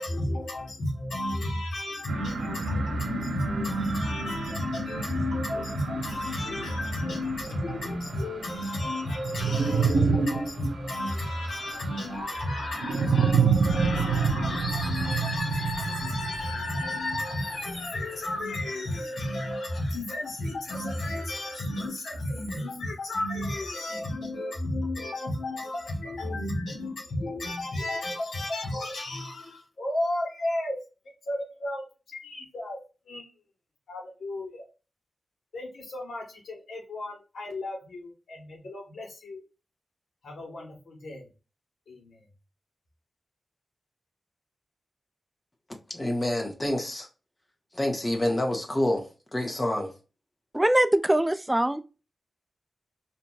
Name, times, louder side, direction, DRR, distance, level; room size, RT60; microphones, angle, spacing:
voice 1, 0.0-30.8 31.3-32.8 33.1-33.3 33.9-34.6 35.5-39.4 40.2-41.3 41.9-42.2, left 1 dB, 85° left, 1.4 m, -33 dB
sound 1, 2.1-17.6, right 5 dB, 90° right, 0.7 m, -29 dB
voice 2, 45.9-47.1 47.7-49.0 49.3-49.9, left 1 dB, 25° left, 1.1 m, -27 dB
voice 3, 50.5-51.8, right 1 dB, 15° right, 0.4 m, -22 dB
4.2 x 2.8 x 2.3 m
cardioid pair, 65°, 0 cm